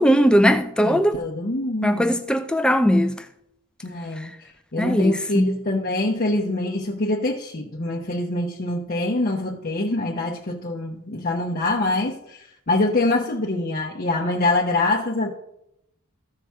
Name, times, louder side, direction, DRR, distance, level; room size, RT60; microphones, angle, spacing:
voice 1, 0.0-1.2 1.8-3.2 4.8-5.6, equal, 5° left, 0.4 m, -19 dB
voice 2, 0.8-2.2 3.8-4.3 4.7-15.3, left 2 dB, 40° left, 0.8 m, -25 dB
14.5 x 5.8 x 3.5 m
head